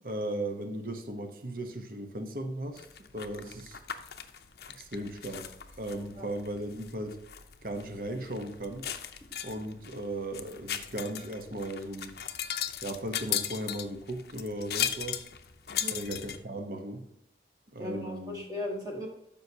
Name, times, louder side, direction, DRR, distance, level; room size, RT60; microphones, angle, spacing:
voice 1, 0.0-2.9 3.1-3.8 4.7-5.5 5.8-7.2 7.6-8.9 9.4-12.1 12.8-15.3 15.9-17.0 17.7-18.4, right 1 dB, 50° right, 6 dB, 1.0 m, -37 dB
sound 1, 2.7-16.4, left 10 dB, 60° left, 0.6 m, -38 dB
voice 2, 15.7-16.0 17.8-19.1, left 1 dB, 20° right, -1 dB, 1.3 m, -37 dB
12.5 x 5.5 x 2.8 m, 0.83 s
head